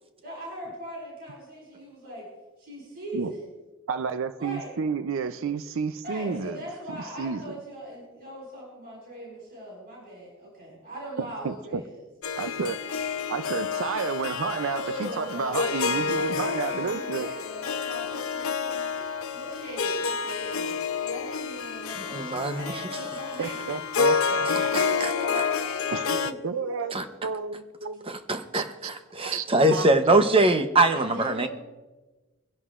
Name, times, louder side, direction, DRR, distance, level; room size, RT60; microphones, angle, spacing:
voice 1, 0.2-2.3 2.6-3.4 4.4-4.7 6.0-12.1 14.7-18.9 19.3-20.7 21.0-23.7 24.6-27.2 30.9-31.5, equal, 45° right, -4 dB, 5.1 m, -40 dB
voice 2, 3.9-6.6 7.2-7.5 11.2-11.8 12.4-12.8 13.3-17.3 23.4-24.6 25.9-26.9 27.2-28.1 28.5-28.9 29.3-29.5 29.7-29.9, right 5 dB, 65° right, 11 dB, 0.5 m, -31 dB
Harp, 12.2-26.3, left 5 dB, 80° left, 0.6 m, -29 dB
voice 3, 22.1-22.7 24.4-25.1 26.9-27.0 28.1-31.5, right 2 dB, 25° right, 8 dB, 0.8 m, -23 dB
24.0 x 11.0 x 2.5 m, 1.2 s
head